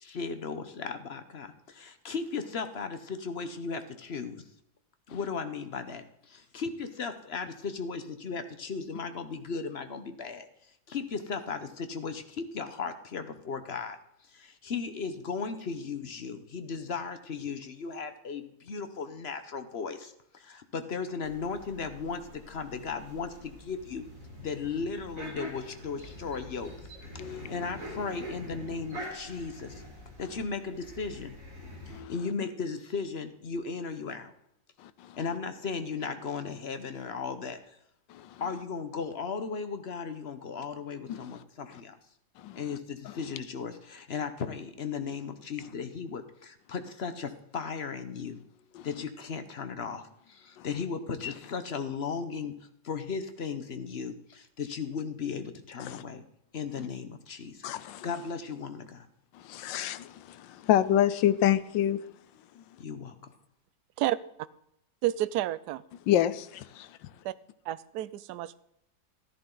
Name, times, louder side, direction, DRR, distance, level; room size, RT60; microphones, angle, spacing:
voice 1, 0.0-4.4 5.1-10.5 10.9-14.0 14.3-24.0 24.4-26.7 27.2-29.7 30.2-31.3 31.9-34.3 35.2-37.6 38.4-42.0 42.6-48.4 48.8-52.5 52.8-56.2 56.5-59.1 62.8-63.2, left 5 dB, 45° left, 0.9 m, -36 dB
sound 1, 21.2-32.0, left 1 dB, 45° right, 4.6 m, -45 dB
voice 2, 27.2-27.5 31.9-32.1 34.8-34.9 38.1-38.3 41.1-41.2 42.4-42.6 55.8-56.0 57.6-58.1 59.5-62.0 66.1-66.9, left 11 dB, 80° left, 1.4 m, -27 dB
voice 3, 65.0-65.8 67.2-67.3 67.7-68.6, right 14 dB, 70° right, 1.0 m, -30 dB
14.0 x 10.5 x 3.9 m
omnidirectional pair, 2.0 m